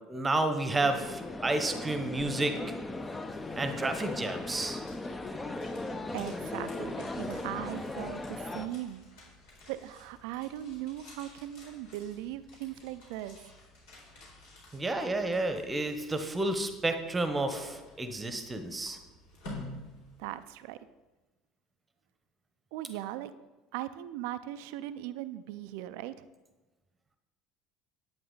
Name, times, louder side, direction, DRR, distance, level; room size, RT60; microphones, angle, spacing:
voice 1, 0.1-2.6 3.6-4.8 14.7-19.0, right 2 dB, 20° right, 8 dB, 1.1 m, -31 dB
sound 1, 0.8-8.7, left 2 dB, 20° left, 0.8 m, -38 dB
sound 2, 2.9-20.7, left 2 dB, 65° left, 4.0 m, -52 dB
voice 2, 6.1-9.0 9.7-13.4 20.2-20.8 22.7-23.3 23.7-26.3, right 13 dB, 65° right, 13 dB, 0.5 m, -39 dB
11.0 x 9.0 x 4.0 m, 1.1 s
figure-of-eight pair, 65°, 0 cm